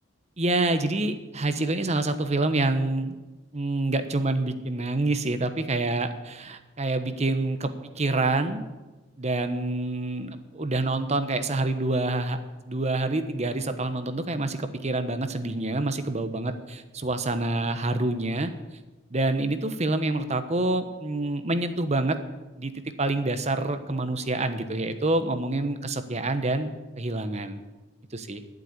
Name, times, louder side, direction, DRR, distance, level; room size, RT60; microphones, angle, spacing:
voice 1, 0.4-3.1 3.5-7.7 8.0-8.6 9.2-12.4 12.6-18.5 19.1-22.2 22.6-22.7 23.0-27.6 28.1-28.4, right 2 dB, 35° right, 9 dB, 1.0 m, -27 dB
11.5 x 8.0 x 9.6 m, 1.2 s
head